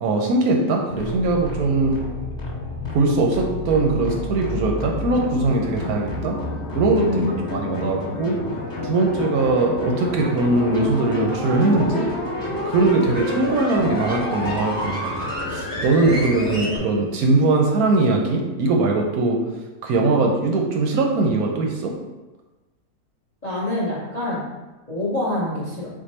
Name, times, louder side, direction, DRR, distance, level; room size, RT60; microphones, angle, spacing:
voice 1, 0.0-2.0 2.9-6.4 6.7-7.2 7.5-8.4 8.8-12.1 12.6-19.4 19.8-21.9, right 3 dB, 70° right, 1 dB, 0.9 m, -21 dB
sound 1, 0.9-16.8, left 2 dB, 5° left, 1.1 m, -29 dB
voice 2, 7.0-7.8 23.4-24.4 24.9-25.9, left 1 dB, 40° left, -6 dB, 0.6 m, -26 dB
4.5 x 2.5 x 4.1 m, 1.1 s
omnidirectional pair, 1.8 m